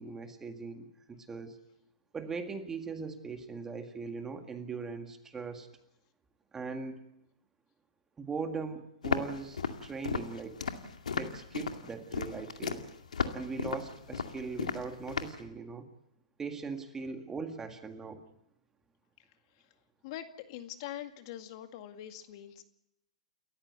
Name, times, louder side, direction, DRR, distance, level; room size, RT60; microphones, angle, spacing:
voice 1, 0.0-1.6 2.1-5.7 6.5-7.0 8.2-10.7 11.2-12.9 13.3-15.9 16.4-18.2, right 4 dB, 10° right, 6 dB, 1.9 m, -40 dB
Walk footsteps, 9.0-15.4, left 5 dB, 90° left, 2.2 m, -35 dB
voice 2, 20.0-22.6, left 12 dB, 45° left, 7 dB, 2.0 m, -43 dB
29.0 x 14.5 x 8.2 m, 0.80 s
hypercardioid pair, 140°, 4 cm